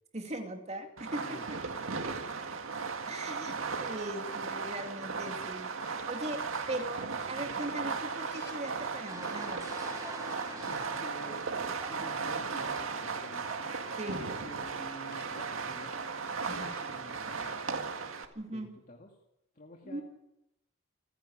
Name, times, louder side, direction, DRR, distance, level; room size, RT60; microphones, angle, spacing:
voice 1, 0.1-1.6 3.1-9.6 14.0-14.2 16.5-16.7 18.3-18.8 19.8-20.0, right 1 dB, 35° right, 4 dB, 2.5 m, -40 dB
Fireworks, 1.0-18.2, right 4 dB, 75° right, 2.0 m, -36 dB
sound 1, 5.8-6.0 6.6-7.1 8.3-8.6 9.2-9.7 10.5-11.0 12.0-12.1 13.3-13.4 14.1-14.3 15.1-15.4 16.7-16.9 17.4-17.6 18.5-18.6, left 4 dB, 60° left, 6.3 m, -57 dB
voice 2, 7.4-7.9 10.6-11.5 11.9-13.7 14.4-15.9 16.4-17.6 18.5-19.1 19.5-20.0, equal, 40° left, 1 dB, 2.1 m, -49 dB
sound 2, 9.1-16.1, right 1 dB, 15° right, 4.2 m, -47 dB
29.0 x 10.5 x 8.6 m, 0.85 s
head